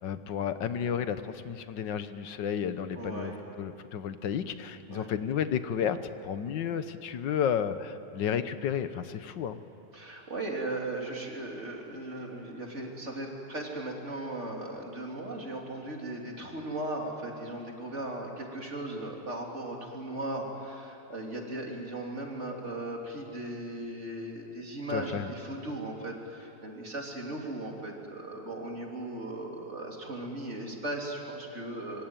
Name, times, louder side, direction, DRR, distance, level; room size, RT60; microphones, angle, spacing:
voice 1, 0.0-6.0 6.2-9.6 24.9-25.3, left 8 dB, 90° left, 11 dB, 1.7 m, -32 dB
voice 2, 3.0-3.4 4.9-5.1 9.9-32.0, right 1 dB, 40° right, 0 dB, 3.6 m, -37 dB
25.0 x 24.0 x 9.1 m, 3.0 s
omnidirectional pair, 1.9 m